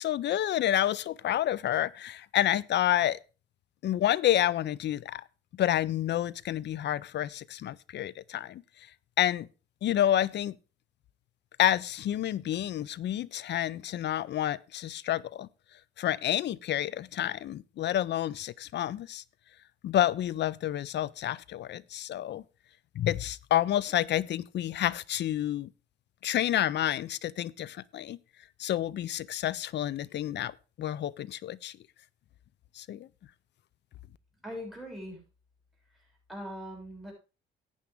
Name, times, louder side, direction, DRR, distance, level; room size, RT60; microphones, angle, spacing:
voice 1, 0.0-3.2 3.8-5.2 5.6-8.6 9.2-9.5 9.8-10.5 11.6-15.5 16.0-19.2 19.8-22.4 23.0-25.7 26.2-28.2 28.6-31.8 32.8-33.1, left 12 dB, 60° left, 0.5 m, -29 dB
voice 2, 34.4-35.2 36.3-37.1, equal, ahead, 6.5 m, -40 dB
12.5 x 8.7 x 3.5 m
cardioid pair, 90°, 20 cm